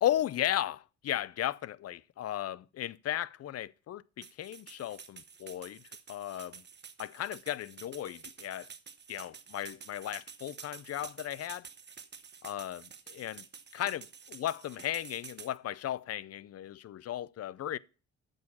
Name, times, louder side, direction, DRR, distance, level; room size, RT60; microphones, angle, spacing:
voice 1, 0.0-5.8 6.1-6.6 7.0-8.7 9.1-11.7 12.4-12.8 13.1-13.4 13.7-17.8, left 12 dB, 55° left, 0.5 m, -35 dB
sound 1, 4.2-15.5, right 6 dB, 35° right, 1.1 m, -50 dB
8.6 x 6.6 x 7.1 m
cardioid pair, 90°, 30 cm